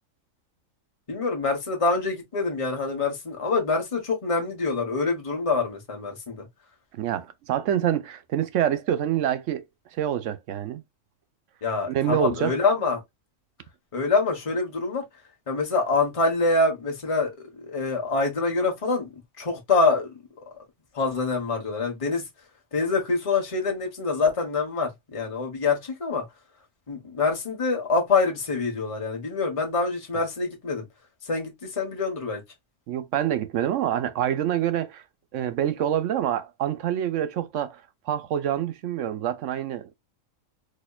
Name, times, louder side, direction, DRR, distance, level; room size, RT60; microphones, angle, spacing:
voice 1, 1.1-6.5 11.6-13.0 13.9-15.0 15.5-19.1 19.4-20.1 20.9-22.2 22.7-26.2 26.9-30.9 31.2-32.4, left 3 dB, 25° left, 1.2 m, -25 dB
voice 2, 6.9-9.6 10.0-10.8 11.9-12.5 32.9-35.0 35.3-37.8 38.1-39.9, right 10 dB, 75° right, 0.9 m, -26 dB
4.2 x 2.8 x 2.3 m
omnidirectional pair, 1.3 m